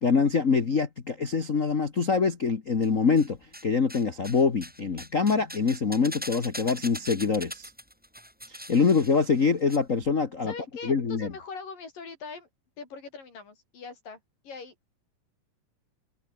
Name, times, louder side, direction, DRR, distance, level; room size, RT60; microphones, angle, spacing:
voice 1, 0.0-3.4 3.6-7.7 8.7-10.5 10.8-11.3, left 5 dB, 45° left, 1.0 m, -24 dB
sound 1, 2.8-3.6 3.9-9.8 10.0-10.1, equal, ahead, 5.4 m, -42 dB
voice 2, 10.4-12.5 12.8-14.2 14.4-15.0, left 5 dB, 80° left, 7.5 m, -41 dB
omnidirectional pair, 3.8 m